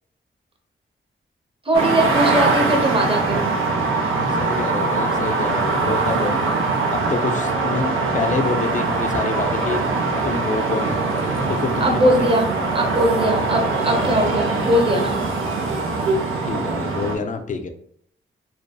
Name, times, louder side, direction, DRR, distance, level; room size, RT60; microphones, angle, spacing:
voice 1, 1.6-3.5 11.8-12.5 12.7-15.2, right 1 dB, 25° right, 1 dB, 0.8 m, -20 dB
sound 1, 1.7-17.2, right 3 dB, 75° right, 0.5 m, -22 dB
voice 2, 4.3-6.5 6.9-9.8 10.2-10.9 11.5-12.0 16.5-17.7, left 4 dB, 40° left, 6 dB, 0.4 m, -27 dB
2.6 x 2.3 x 2.2 m, 0.66 s
cardioid pair, 45°, 21 cm